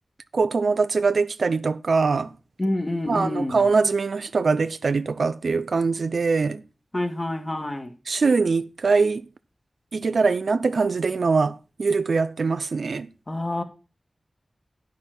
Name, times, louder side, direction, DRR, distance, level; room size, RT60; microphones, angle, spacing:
voice 1, 0.3-2.3 3.1-6.6 8.1-9.2 9.9-13.1, right 4 dB, 85° right, 0.5 m, -22 dB
voice 2, 2.6-3.6 6.9-7.9 13.3-13.6, left 1 dB, 30° left, 1.8 m, -27 dB
9.9 x 5.9 x 6.0 m
wide cardioid pair, 65°, 0 cm